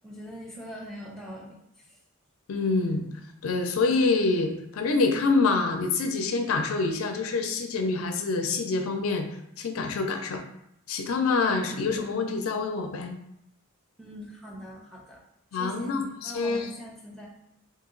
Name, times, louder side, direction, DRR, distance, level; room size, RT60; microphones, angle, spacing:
voice 1, 0.0-2.0 11.7-12.1 14.0-15.2 15.6-17.3, equal, ahead, -4 dB, 0.6 m, -42 dB
voice 2, 2.5-3.1 3.4-9.2 9.6-10.4 10.9-13.2 15.5-16.7, left 3 dB, 80° left, 5 dB, 0.4 m, -26 dB
2.8 x 2.7 x 3.8 m, 0.78 s
head